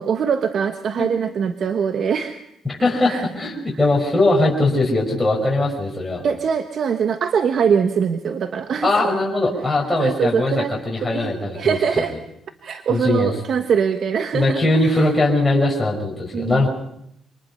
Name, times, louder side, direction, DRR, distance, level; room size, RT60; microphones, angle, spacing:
voice 1, 0.0-2.4 3.1-3.2 6.2-9.1 10.0-10.7 11.0-12.2 12.6-15.1 16.3-16.7, right 7 dB, 60° right, 8 dB, 1.2 m, -22 dB
voice 2, 2.8-6.2 8.8-11.8 12.9-13.3 14.3-16.7, left 2 dB, 15° left, -2 dB, 5.7 m, -20 dB
26.0 x 20.0 x 5.6 m, 0.76 s
cardioid pair, 90°, 0 cm